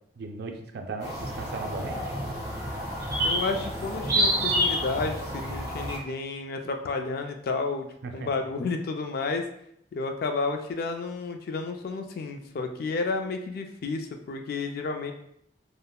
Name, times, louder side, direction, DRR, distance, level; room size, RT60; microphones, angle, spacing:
voice 1, 0.2-2.1 8.0-8.5, right 3 dB, 65° right, 4 dB, 0.4 m, -37 dB
sound 1, 1.0-6.0, equal, 20° right, 0.9 m, -29 dB
voice 2, 3.2-7.9 8.1-9.4 9.9-15.1, left 3 dB, 55° left, 5 dB, 0.3 m, -31 dB
3.5 x 2.0 x 2.3 m, 0.73 s
head